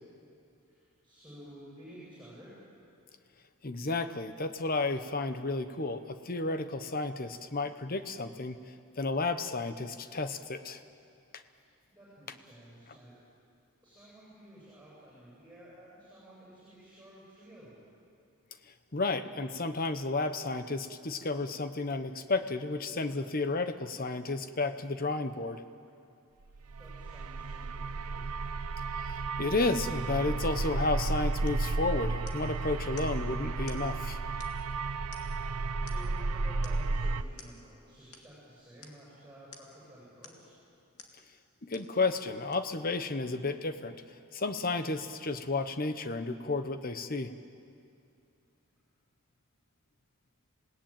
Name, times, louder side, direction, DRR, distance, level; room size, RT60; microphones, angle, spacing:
voice 1, 0.6-2.6 11.6-13.1 13.8-17.8 23.1-23.3 26.7-28.3 35.3-40.5, equal, 5° right, -7 dB, 7.8 m, -53 dB
voice 2, 3.6-8.6 9.0-10.8 18.9-25.6 29.0-34.2 41.6-44.0 44.3-47.3, left 3 dB, 40° left, 10 dB, 1.0 m, -32 dB
sound 1, 26.5-37.2, right 3 dB, 90° right, 0.7 m, -33 dB
sound 2, 31.5-31.7 32.3-32.6 33.0-33.2 33.7-33.9 34.4-34.7 35.1-35.5 35.9-36.2 36.6-36.9 37.4-37.6 38.1-38.3 38.8-39.0 39.5-39.8 40.2-40.5 41.0-41.2 41.7-42.0 42.5-42.6, left 5 dB, 85° left, 2.3 m, -52 dB
27.5 x 18.0 x 9.1 m, 2.5 s
head